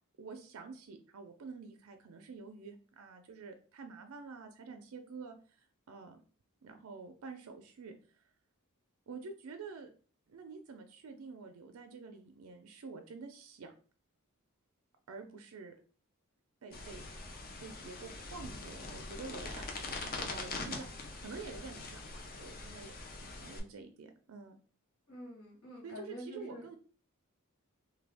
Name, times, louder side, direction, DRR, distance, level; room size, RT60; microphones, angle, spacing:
voice 1, 0.2-6.2 6.6-8.2 9.1-9.9 10.3-13.7 15.1-15.8 16.6-17.0 17.6-20.9 21.2-23.0 23.2-24.5 25.8-26.8, right 4 dB, 80° right, 6 dB, 0.5 m, -48 dB
sound 1, 16.7-23.6, left 3 dB, 45° left, 0.6 m, -43 dB
voice 2, 25.1-26.7, equal, 80° left, -4 dB, 1.5 m, -47 dB
3.3 x 2.2 x 3.4 m, 0.40 s
head